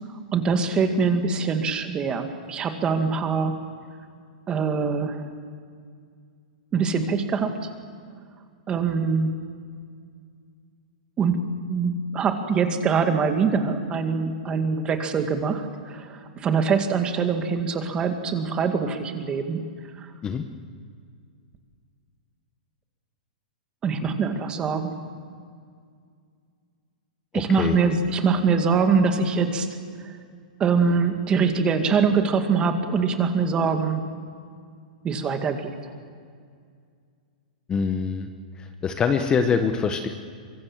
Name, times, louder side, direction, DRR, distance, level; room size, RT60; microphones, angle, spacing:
voice 1, 0.3-3.6 4.5-5.3 6.7-7.7 8.7-9.3 11.2-19.6 20.0-20.1 23.8-25.0 27.3-29.8 30.0-30.1 30.6-34.0 35.0-35.9, right 5 dB, 20° right, 6 dB, 2.1 m, -23 dB
voice 2, 27.3-27.8 37.7-38.3 38.6-40.1, left 6 dB, 15° left, 7 dB, 1.1 m, -24 dB
24.5 x 22.5 x 7.4 m, 2.2 s
hypercardioid pair, 150°, 5 cm